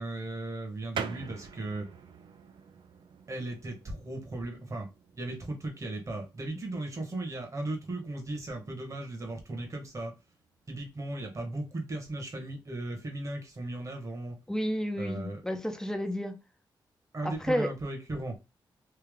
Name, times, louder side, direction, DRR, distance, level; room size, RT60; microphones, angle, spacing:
voice 1, 0.0-1.9 3.3-4.9 5.1-10.1 10.7-14.4 15.0-15.4 17.1-18.4, right 2 dB, 40° right, 1.4 m, -36 dB
sound 1, 0.9-11.1, right 7 dB, 75° right, 0.5 m, -47 dB
voice 2, 14.5-16.3 17.2-17.7, equal, 5° left, 0.7 m, -31 dB
3.4 x 2.8 x 3.6 m
cardioid pair, 85°, 8 cm